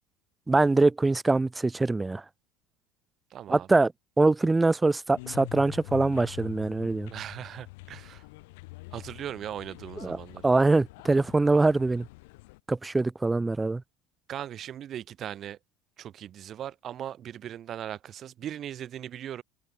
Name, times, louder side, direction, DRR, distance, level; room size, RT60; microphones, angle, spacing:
voice 1, 0.5-2.2 3.5-3.9 4.2-7.1 10.0-10.2 10.4-12.1 12.7-13.8, right 3 dB, 15° right, 3.0 m, -23 dB
voice 2, 3.3-3.7 7.1-8.2 8.9-10.5 14.3-15.6 16.0-19.4, right 10 dB, 45° right, 5.0 m, -39 dB
sound 1, 5.2-12.6, left 24 dB, 70° left, 7.8 m, -45 dB
hypercardioid pair, 70°, 0 cm